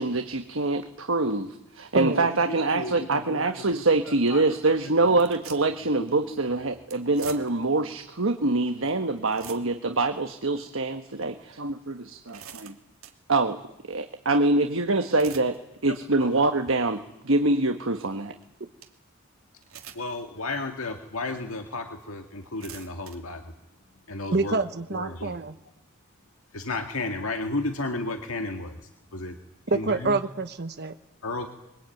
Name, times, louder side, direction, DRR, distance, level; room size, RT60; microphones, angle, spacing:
voice 1, 0.0-12.7 13.3-13.6 13.9-15.5 15.8-17.0 17.2-18.3, right 2 dB, 70° right, 7 dB, 1.4 m, -25 dB
voice 2, 1.9-2.3 24.3-25.6 29.7-30.9, right 3 dB, 50° right, 9 dB, 1.1 m, -27 dB
voice 3, 2.5-4.4 5.1-5.2 6.3-6.4 16.2-16.4 19.9-23.5 24.1-24.6 24.9-25.4 26.5-29.4 29.7-30.2 31.2-31.5, left 2 dB, 80° left, 5 dB, 1.9 m, -33 dB
sound 1, 3.9-4.0 4.3-4.4 5.1-5.8 6.1-6.2 6.9-7.7 8.3-8.4 8.9-9.0 9.2-9.9 10.4-10.5 11.2-11.3 11.9-13.2 14.9-15.6 16.0-16.3 16.9-17.0 18.4-18.5 18.8-18.9 19.6-20.2 20.8-20.9 21.7-21.8 22.3-23.2, right 9 dB, 85° right, 2.6 m, -45 dB
25.5 x 22.5 x 9.3 m, 0.91 s
head